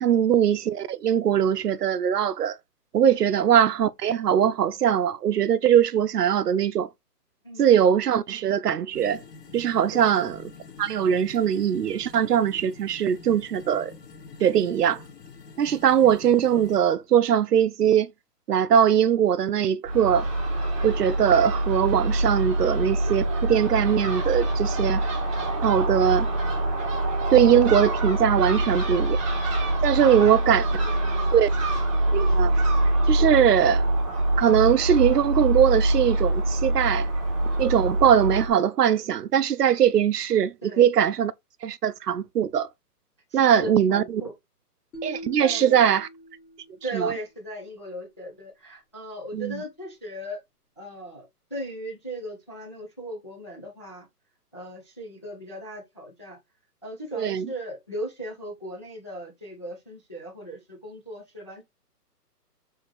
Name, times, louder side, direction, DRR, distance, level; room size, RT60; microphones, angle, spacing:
voice 1, 0.0-2.6 2.9-6.9 7.6-9.2 9.5-10.4 10.8-13.9 14.4-15.0 15.6-18.1 18.5-20.3 20.8-25.0 25.6-26.3 27.3-29.2 29.8-30.6 31.3-31.5 32.1-32.5 33.1-33.8 34.4-37.1 37.6-41.3 41.6-42.7 43.3-44.2 45.0-46.1 46.9-47.1 49.3-49.6 57.1-57.5, right 9 dB, 75° right, 0.7 m, -21 dB
sound 1, 8.9-16.8, left 4 dB, 85° left, 2.1 m, -46 dB
Crow / Gull seagull, 19.8-38.5, right 1 dB, 20° right, 1.1 m, -25 dB
voice 2, 30.0-31.3 33.2-33.4 40.6-40.8 43.3-44.3 45.4-45.8 46.8-50.4 50.8-54.1 54.5-56.4 56.8-61.6, right 1 dB, 20° left, 0.5 m, -38 dB
sound 2, 44.9-47.1, equal, 65° left, 1.7 m, -42 dB
4.4 x 3.6 x 3.2 m
hypercardioid pair, 165°, 48 cm